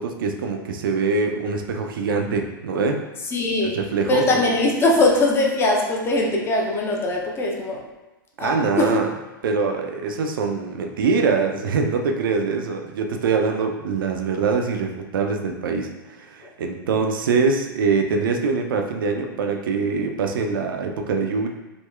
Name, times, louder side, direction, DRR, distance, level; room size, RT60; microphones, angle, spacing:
voice 1, 0.0-3.0 3.7-4.4 8.4-9.1 9.4-21.5, right 4 dB, 70° right, 4 dB, 0.4 m, -23 dB
voice 2, 3.3-3.8 4.1-7.8 8.4-9.0, left 2 dB, 20° left, -1 dB, 0.5 m, -21 dB
3.6 x 2.1 x 2.3 m, 1.1 s
hypercardioid pair, 105°, 12 cm